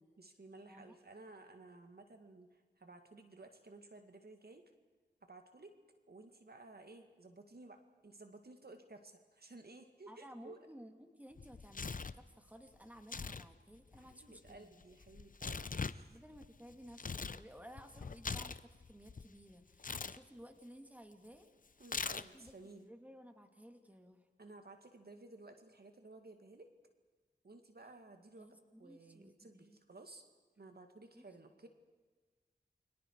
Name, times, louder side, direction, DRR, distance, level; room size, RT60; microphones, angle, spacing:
voice 1, 0.2-4.7 5.2-5.8 6.1-10.6 13.9-16.2 21.8-22.9 24.4-26.7 27.4-28.5 28.8-30.2 30.6-31.7, right 2 dB, 60° right, 6 dB, 2.1 m, -56 dB
voice 2, 10.1-14.7 16.1-21.8 22.2-24.3 28.4-29.8 31.1-31.3, equal, 10° right, 5 dB, 2.4 m, -56 dB
Tearing, 11.4-12.2 13.0-13.5 13.7-17.4 17.8-19.3 19.8-20.2 21.8-22.5, left 4 dB, 45° left, 0.7 m, -42 dB
29.5 x 24.0 x 4.8 m, 1.4 s
wide cardioid pair, 65°, 19 cm